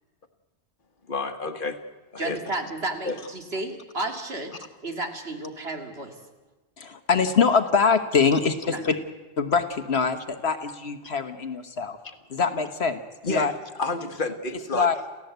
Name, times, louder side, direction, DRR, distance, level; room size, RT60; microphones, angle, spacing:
voice 1, 1.1-1.8 2.1-2.4 3.0-3.2 8.3-8.4 11.0-11.1 12.0-12.1 13.2-13.5 13.8-14.9, left 3 dB, 55° left, 8 dB, 1.7 m, -30 dB
voice 2, 2.2-4.5 4.8-6.2 8.7-8.9, right 2 dB, 75° right, 4 dB, 2.8 m, -32 dB
voice 3, 6.8-9.0 9.4-12.0 12.3-13.0 13.3-13.5 14.7-14.9, left 5 dB, 80° left, 7 dB, 1.5 m, -23 dB
28.5 x 15.5 x 8.1 m, 1.2 s
omnidirectional pair, 1.1 m